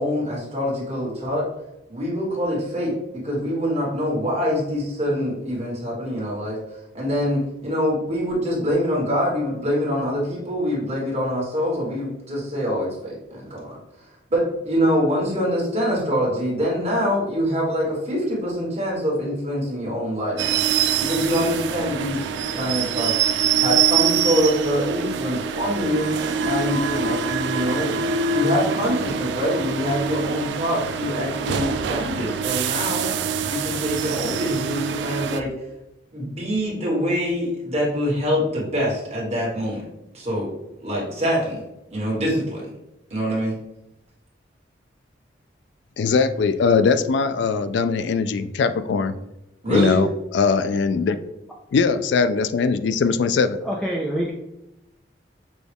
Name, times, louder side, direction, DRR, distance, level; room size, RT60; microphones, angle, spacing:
voice 1, 0.0-1.4 1.9-6.6 6.9-13.8 14.3-20.7 21.0-23.1 23.6-28.0 28.3-33.1 33.4-35.5 36.1-39.8 40.1-40.5 40.8-41.6 41.9-42.6 43.1-43.6 49.6-50.0, equal, 35° right, -5 dB, 1.6 m, -25 dB
sound 1, 20.4-35.4, right 7 dB, 80° right, 0.3 m, -24 dB
voice 2, 46.0-49.1 49.7-50.1 50.3-51.2 51.7-53.6, left 5 dB, 80° left, 11 dB, 0.3 m, -20 dB
voice 3, 53.6-54.3, right 1 dB, 5° left, -3 dB, 0.4 m, -25 dB
6.0 x 2.3 x 3.4 m, 0.90 s
head